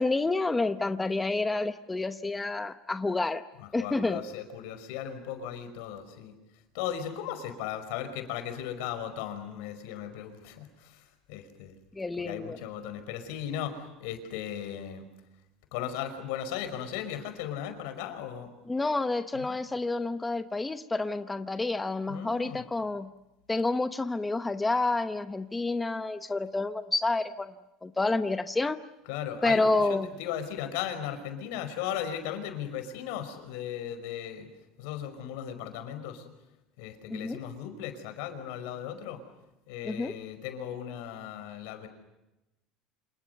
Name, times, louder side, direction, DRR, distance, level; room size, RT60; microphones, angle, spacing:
voice 1, 0.0-3.4 3.7-4.2 11.9-12.6 18.7-23.1 23.5-27.5 27.8-28.8 29.4-30.1 37.1-37.4 39.9-40.1, left 3 dB, 10° left, 9 dB, 1.0 m, -29 dB
voice 2, 3.6-6.3 6.7-11.8 12.2-15.0 15.7-18.5 19.3-19.6 22.1-22.6 29.1-34.5 34.8-36.3 36.8-39.2 39.7-41.9, left 9 dB, 80° left, 8 dB, 5.3 m, -37 dB
29.0 x 27.5 x 6.8 m, 0.96 s
cardioid pair, 135°, 0 cm